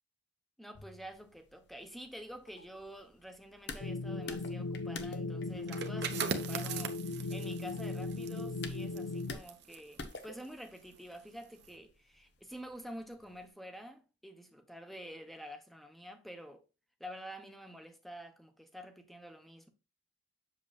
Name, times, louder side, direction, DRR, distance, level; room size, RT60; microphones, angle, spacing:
voice 1, 0.6-16.6 17.0-19.7, equal, ahead, 0.9 m, -48 dB
sound 1, 0.7-13.5, left 4 dB, 60° left, 1.0 m, -51 dB
sound 2, 3.8-9.3, left 3 dB, 85° left, 0.5 m, -38 dB
sound 3, 5.6-11.1 11.4-11.7, right 6 dB, 60° right, 0.9 m, -41 dB
7.6 x 6.8 x 2.4 m
head